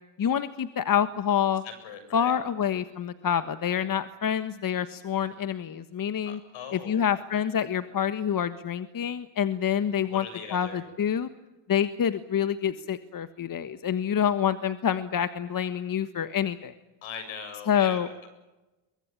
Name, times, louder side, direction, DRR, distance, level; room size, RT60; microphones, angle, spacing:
voice 1, 0.2-1.6 2.1-6.4 6.7-11.3 11.7-16.7 17.7-18.1, left 8 dB, 45° left, 11 dB, 1.5 m, -27 dB
voice 2, 1.8-2.3 6.2-7.0 10.1-10.8 17.0-18.3, left 7 dB, 75° left, 9 dB, 7.9 m, -40 dB
23.5 x 21.5 x 9.1 m, 1.0 s
supercardioid pair, 80°, 47 cm